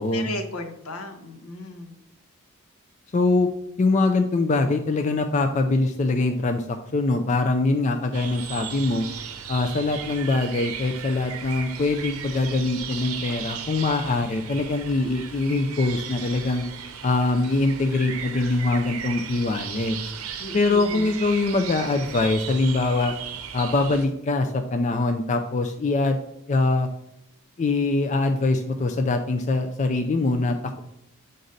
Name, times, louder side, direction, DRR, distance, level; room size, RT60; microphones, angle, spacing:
voice 1, 0.1-1.9 20.4-21.1, left 1 dB, 80° left, 6 dB, 0.9 m, -35 dB
voice 2, 3.1-3.5 3.8-9.1 9.5-16.6 17.0-20.1 20.5-23.1 23.5-26.2 26.5-26.9 27.6-30.8, left 3 dB, 35° left, 6 dB, 0.3 m, -23 dB
sound 1, 8.1-24.1, right 7 dB, 75° right, 0.7 m, -36 dB
6.5 x 3.9 x 4.0 m, 0.79 s
head